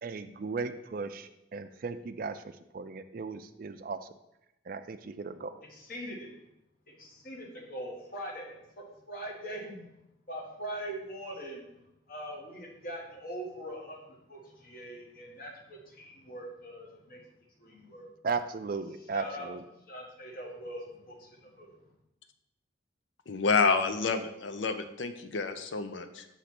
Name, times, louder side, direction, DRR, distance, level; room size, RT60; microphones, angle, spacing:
voice 1, 0.0-2.4 2.7-4.0 4.7-5.6 18.2-19.6, right 4 dB, 45° right, 10 dB, 0.4 m, -36 dB
voice 2, 5.7-6.3 6.9-9.9 10.3-11.6 12.1-17.2 17.6-18.1 19.1-19.5 19.9-21.7, equal, 45° left, -1 dB, 1.3 m, -42 dB
voice 3, 23.3-26.3, left 4 dB, 70° left, 9 dB, 0.5 m, -29 dB
6.5 x 3.1 x 5.8 m, 0.85 s
head